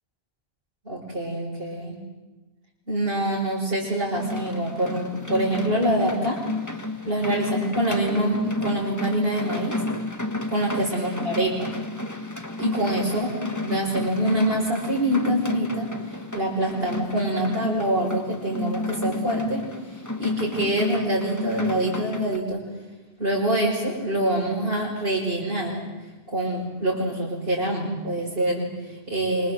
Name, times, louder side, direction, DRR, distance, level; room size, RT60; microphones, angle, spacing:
voice 1, 0.8-2.0 2.9-6.4 7.0-9.8 10.5-11.7 12.6-15.9 16.3-19.7 20.2-22.6 23.2-25.9 26.3-29.5, right 1 dB, 60° right, -6 dB, 6.0 m, -25 dB
sound 1, 4.1-22.4, left 2 dB, 15° left, 1.7 m, -31 dB
26.0 x 26.0 x 7.8 m, 1.2 s
omnidirectional pair, 1.1 m